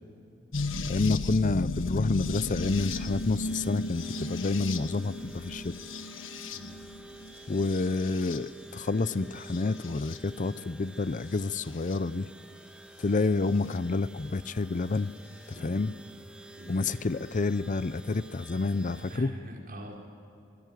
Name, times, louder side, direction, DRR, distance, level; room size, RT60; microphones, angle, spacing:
sound 1, 0.5-8.7 9.4-10.2 11.3-12.0 13.7-13.8 15.5-15.6, left 2 dB, 85° left, 1.4 m, -35 dB
voice 1, 0.9-5.7 7.5-12.3 13.0-15.1 15.6-15.9 16.7-19.3, left 3 dB, 40° left, 16 dB, 0.6 m, -29 dB
sound 2, 2.6-19.2, right 1 dB, 5° right, 1.5 m, -50 dB
voice 2, 15.5-15.9 16.6-16.9 19.1-20.0, equal, 50° right, -1 dB, 5.4 m, -43 dB
26.5 x 21.0 x 9.4 m, 2.7 s
head